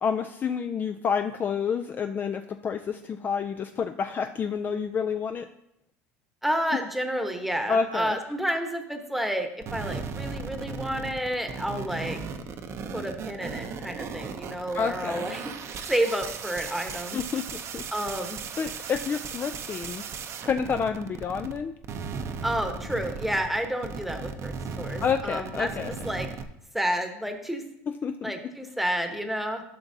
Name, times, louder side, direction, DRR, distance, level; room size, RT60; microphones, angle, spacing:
voice 1, 0.0-5.5 7.7-8.2 14.7-15.3 17.1-17.8 18.6-20.1 20.4-21.7 25.0-25.9 27.9-28.3, left 6 dB, 30° left, 8 dB, 0.3 m, -29 dB
voice 2, 6.4-12.2 12.9-15.5 15.9-17.2 17.9-18.4 22.4-25.7 26.0-26.3 26.7-27.7 28.2-29.6, equal, ahead, 5 dB, 1.0 m, -30 dB
sound 1, 9.6-21.6 21.8-26.4, right 5 dB, 45° right, 0.7 m, -36 dB
12.0 x 5.9 x 2.7 m, 0.78 s
supercardioid pair, 110°, 7 cm